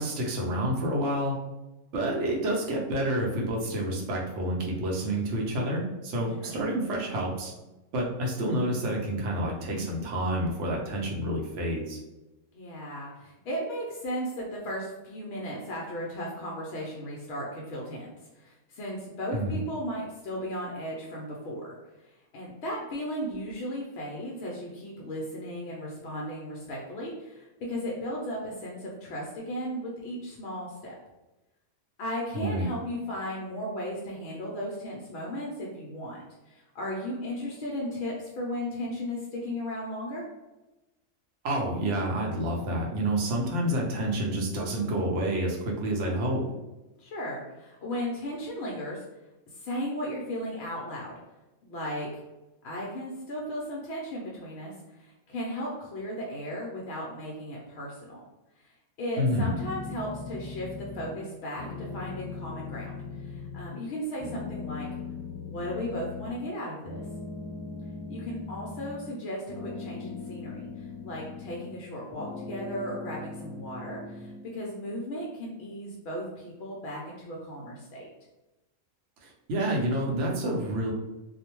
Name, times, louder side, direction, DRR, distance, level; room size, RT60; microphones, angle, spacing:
voice 1, 0.0-1.4 1.9-7.5 7.9-12.0 19.3-19.5 32.3-32.7 41.4-46.4 59.2-59.5 79.2-80.9, right 1 dB, 65° right, -1 dB, 0.9 m, -29 dB
voice 2, 12.5-21.7 22.0-31.0 32.0-40.3 47.0-49.0 49.5-51.2 51.6-52.2 52.6-58.2 58.6-64.9 65.4-67.0 68.1-78.1, equal, 65° left, -3 dB, 0.6 m, -36 dB
sound 1, 59.2-61.3 61.6-63.9 64.2-66.5 66.8-69.2 69.5-71.8 72.1-74.4, left 4 dB, 10° right, 0.8 m, -39 dB
2.5 x 2.1 x 2.9 m, 1.0 s
omnidirectional pair, 1.5 m